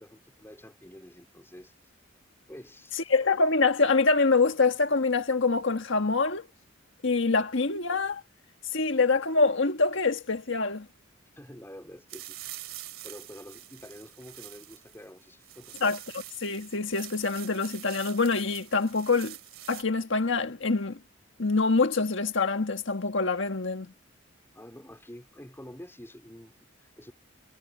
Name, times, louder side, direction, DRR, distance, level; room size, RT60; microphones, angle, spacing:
voice 1, 0.0-1.7 2.5-3.1 11.4-12.7 13.0-15.8 24.5-27.1, equal, 10° left, 3.6 m, -48 dB
voice 2, 3.1-6.5 7.0-8.2 8.7-10.9 15.8-19.4 19.7-21.0 21.4-23.9, left 3 dB, 65° left, 1.6 m, -25 dB
sound 1, 12.1-19.8, right 14 dB, 80° right, 2.4 m, -45 dB
head